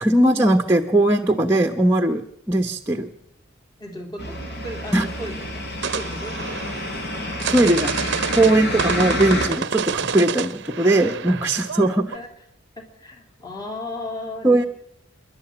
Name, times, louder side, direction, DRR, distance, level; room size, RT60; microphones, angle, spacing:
voice 1, 0.0-3.1 4.9-5.1 7.5-12.2 14.4-14.7, right 1 dB, 10° right, 3 dB, 1.0 m, -19 dB
voice 2, 3.8-4.4 4.6-6.7 12.1-12.4 12.8-14.7, left 1 dB, 20° left, 2 dB, 3.3 m, -35 dB
sound 1, 4.2-9.5, left 1 dB, 50° left, 4.3 m, -29 dB
sound 2, 5.8-12.2, right 6 dB, 55° right, 0.7 m, -29 dB
27.0 x 11.5 x 8.8 m, 0.77 s
head